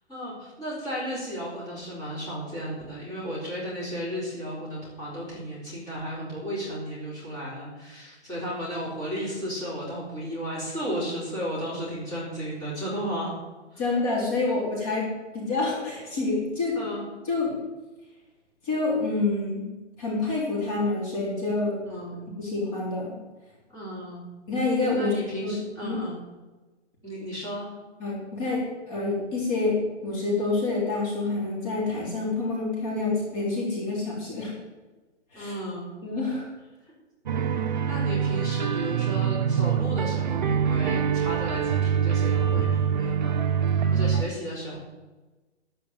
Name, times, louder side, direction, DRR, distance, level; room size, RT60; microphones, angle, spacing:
voice 1, 0.1-13.3 13.7-13.8 16.7-17.0 21.9-22.3 23.7-24.3 25.0-26.2 27.0-27.7 35.3-35.9 37.8-43.4 43.7-44.8, equal, 10° left, -9 dB, 4.0 m, -34 dB
voice 2, 13.8-15.1 15.3-16.8 17.3-17.6 18.6-19.6 20.0-21.8 22.4-23.1 24.5-25.1 25.4-26.0 28.0-34.5 35.3-35.5 36.0-36.5, left 3 dB, 30° left, -5 dB, 4.0 m, -27 dB
sound 1, 37.3-44.2, right 7 dB, 40° right, 0.7 m, -24 dB
13.0 x 5.7 x 9.2 m, 1.2 s
hypercardioid pair, 170°, 35 cm